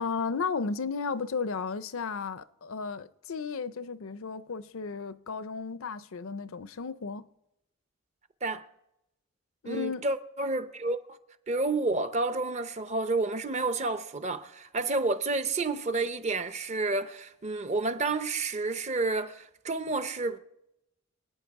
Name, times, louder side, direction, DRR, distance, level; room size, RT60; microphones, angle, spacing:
voice 1, 0.0-7.3 9.6-10.0, left 5 dB, 65° left, 0.6 m, -34 dB
voice 2, 9.6-11.0 11.5-20.4, right 3 dB, 30° right, 0.6 m, -30 dB
26.0 x 9.3 x 4.7 m
head